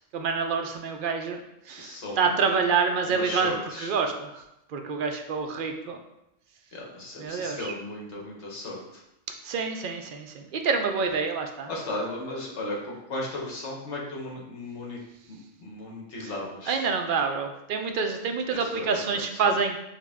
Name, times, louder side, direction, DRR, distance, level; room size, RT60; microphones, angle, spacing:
voice 1, 0.1-3.5 3.8-6.0 7.2-7.7 9.4-11.7 16.2-16.3 16.7-19.8, right 5 dB, 60° right, 4 dB, 0.6 m, -27 dB
voice 2, 1.8-2.4 3.0-3.9 6.7-9.0 11.7-15.0 15.3-16.9 18.5-19.5, left 2 dB, 65° left, -2 dB, 1.3 m, -36 dB
6.4 x 2.2 x 3.5 m, 0.86 s
omnidirectional pair, 1.3 m